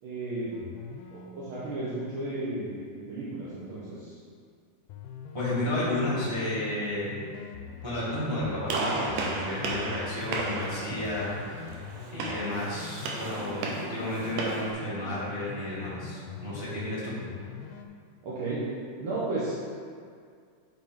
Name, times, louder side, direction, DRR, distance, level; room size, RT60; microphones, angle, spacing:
voice 1, 0.0-0.5 1.1-4.2 18.2-18.7 19.0-19.6, right 2 dB, 55° right, -10 dB, 1.6 m, -34 dB
sound 1, 0.5-2.6 4.9-17.9, left 7 dB, 85° left, 2.2 m, -43 dB
voice 2, 5.3-7.2 7.8-11.7 12.1-17.1, left 1 dB, 15° right, -8 dB, 1.1 m, -32 dB
Gunshot gunfire, 8.7-14.7, right 3 dB, 85° right, 2.5 m, -34 dB
9.3 x 5.0 x 3.7 m, 2.1 s
omnidirectional pair, 3.7 m